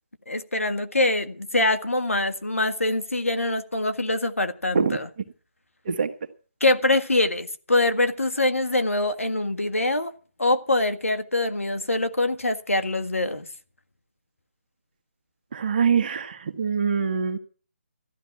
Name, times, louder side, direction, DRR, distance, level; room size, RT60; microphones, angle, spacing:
voice 1, 0.3-5.1 6.6-10.1 10.4-13.5, left 2 dB, 85° left, 1.6 m, -24 dB
voice 2, 15.5-17.4, right 6 dB, 40° right, 1.4 m, -24 dB
14.0 x 12.0 x 5.9 m
figure-of-eight pair, 150°, 7 cm